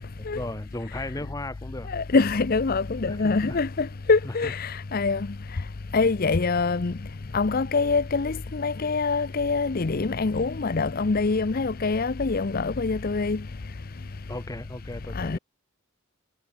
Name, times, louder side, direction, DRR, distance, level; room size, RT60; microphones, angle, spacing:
voice 1, 0.2-1.9 3.1-3.6 4.2-4.5 14.3-15.4, left 1 dB, 15° left, 1.3 m, -36 dB
voice 2, 1.9-5.3 5.9-6.9 7.3-13.4 15.1-15.4, left 4 dB, 40° left, 0.6 m, -24 dB
head